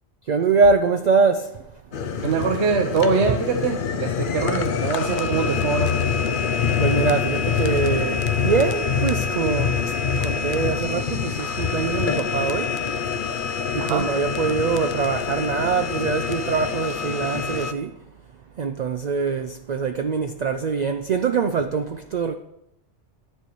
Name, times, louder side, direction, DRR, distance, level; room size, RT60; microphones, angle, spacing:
voice 1, 0.3-1.5 2.0-2.1 6.8-9.8 10.2-12.7 13.7-17.9 18.6-22.3, right 5 dB, 55° right, 0.5 m, -23 dB
sound 1, 1.9-17.7, left 6 dB, 55° left, 0.7 m, -25 dB
voice 2, 2.2-5.9 13.8-14.1, right 5 dB, 75° right, 1.1 m, -23 dB
10.5 x 4.5 x 6.9 m
omnidirectional pair, 1.2 m